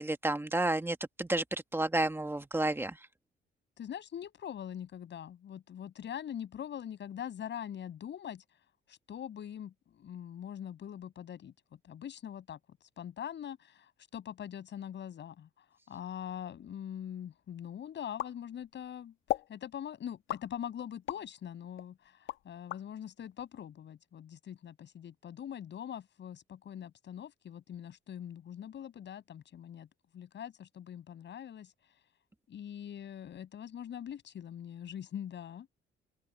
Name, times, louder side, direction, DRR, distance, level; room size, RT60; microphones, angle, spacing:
voice 1, 0.0-3.0, right 2 dB, 10° right, 1.7 m, -31 dB
voice 2, 3.8-8.4 8.9-11.5 11.8-12.6 13.0-15.5 15.9-19.1 19.5-29.9 30.1-31.7 32.5-35.7, left 9 dB, 65° left, 6.9 m, -43 dB
sound 1, 18.2-18.9 19.3-19.6 20.3-21.3 21.8-22.8, left 14 dB, 85° left, 1.7 m, -37 dB
open air
cardioid pair, 90°, 20 cm